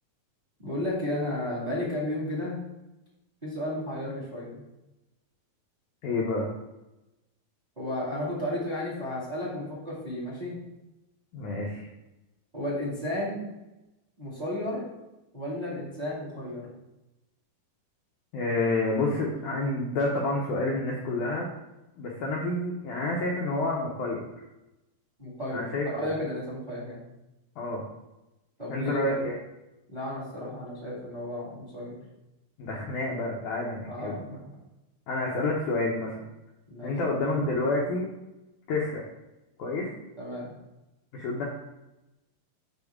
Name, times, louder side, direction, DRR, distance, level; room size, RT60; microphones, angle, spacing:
voice 1, 0.6-2.5 3.4-4.6 7.7-10.5 12.5-13.5 14.2-14.8 15.3-16.7 25.2-27.0 28.6-29.2 29.9-31.9 33.8-34.2 34.4-34.5 36.7-36.9 40.2-40.4, left 1 dB, 15° right, -6 dB, 1.7 m, -33 dB
voice 2, 6.0-6.5 11.3-11.9 18.3-21.5 22.0-24.3 25.5-26.1 27.6-27.8 28.7-29.3 32.6-34.2 35.1-36.2 36.8-38.1 38.7-39.0 39.6-39.9 41.1-41.4, left 2 dB, 70° left, -2 dB, 1.9 m, -29 dB
6.6 x 6.2 x 3.5 m, 0.96 s
omnidirectional pair, 4.3 m